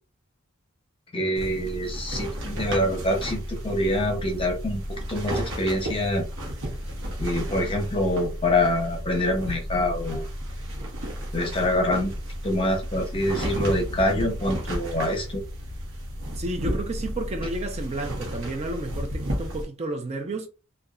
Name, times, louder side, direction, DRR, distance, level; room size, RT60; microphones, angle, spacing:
voice 1, 1.1-4.8 5.1-6.3 7.2-10.3 11.3-12.1 12.4-15.4, left 1 dB, 25° left, 0.8 m, -25 dB
sound 1, 1.3-19.6, equal, 65° right, 0.9 m, -33 dB
voice 2, 16.3-20.5, right 2 dB, 30° right, 0.5 m, -32 dB
2.8 x 2.3 x 2.4 m
head